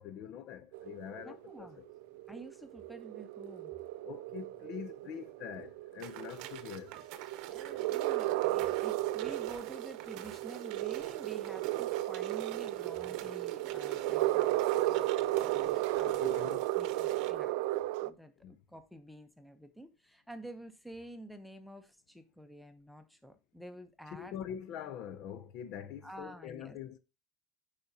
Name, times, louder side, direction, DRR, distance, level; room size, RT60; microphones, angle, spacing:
voice 1, 0.0-1.9 4.0-7.0 16.0-16.6 18.4-18.6 24.1-27.0, left 9 dB, 50° left, 0.5 m, -44 dB
sound 1, 0.7-18.1, right 16 dB, 75° right, 0.4 m, -34 dB
voice 2, 1.2-1.8 2.3-3.7 7.5-14.6 14.9-17.6 18.0-24.4 26.0-26.8, right 1 dB, ahead, 0.7 m, -50 dB
sound 2, 6.0-17.3, right 12 dB, 60° right, 0.8 m, -49 dB
8.5 x 4.9 x 2.7 m
cardioid pair, 145°, 0 cm